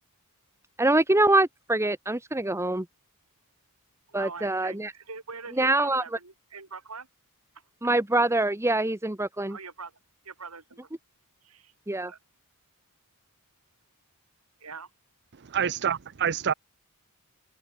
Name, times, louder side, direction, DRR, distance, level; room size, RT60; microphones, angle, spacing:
voice 1, 0.8-2.9 4.1-4.9 5.6-6.0 7.8-9.6 11.9-12.1, right 2 dB, 10° right, 1.3 m, -24 dB
voice 2, 4.1-7.1 9.5-9.9 10.2-10.8 11.4-11.7 12.0-12.2 14.6-14.9, right 4 dB, 75° right, 5.3 m, -42 dB
voice 3, 15.4-16.5, right 8 dB, 50° right, 0.7 m, -27 dB
head